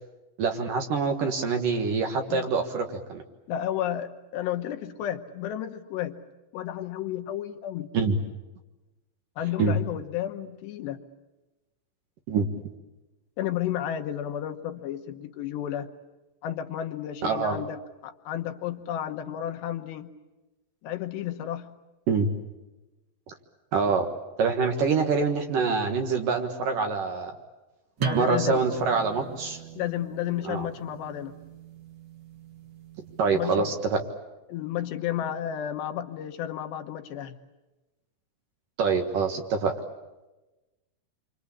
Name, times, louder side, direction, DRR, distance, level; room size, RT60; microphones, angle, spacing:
voice 1, 0.4-3.2 7.9-8.2 9.6-9.8 12.3-12.5 17.2-17.6 22.1-22.3 23.3-23.4 23.7-24.1 24.4-27.3 28.1-29.6 30.4-30.7 33.2-34.0 38.8-39.7, right 4 dB, 60° right, 4 dB, 2.7 m, -25 dB
voice 2, 3.5-6.2 6.5-7.9 9.4-11.0 13.4-15.9 16.4-20.1 20.8-21.7 28.0-28.6 29.8-31.4 33.3-33.7 34.5-37.4, left 11 dB, 75° left, 6 dB, 3.2 m, -32 dB
sound 1, 28.0-33.4, right 6 dB, 75° right, 1.1 m, -38 dB
28.0 x 25.0 x 8.5 m, 1.1 s
omnidirectional pair, 5.2 m